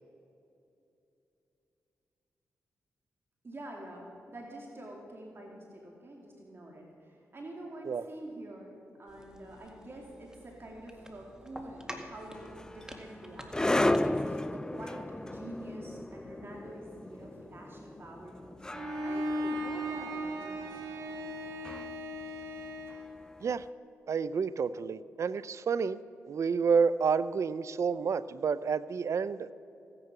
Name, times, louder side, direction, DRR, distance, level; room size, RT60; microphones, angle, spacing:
voice 1, 3.4-8.7 9.0-13.6 14.0-18.7 19.0-20.7, right 1 dB, 45° right, -1 dB, 2.6 m, -46 dB
sound 1, 9.1-14.3, equal, 10° right, 1.9 m, -49 dB
sound 2, 12.3-23.5, left 1 dB, 10° left, 0.4 m, -35 dB
Bowed string instrument, 18.7-23.1, equal, 80° right, 1.6 m, -37 dB
voice 2, 24.1-26.0 26.3-29.5, right 5 dB, 60° right, 17 dB, 0.5 m, -29 dB
16.0 x 9.8 x 6.0 m, 2.8 s
cardioid pair, 55°, 6 cm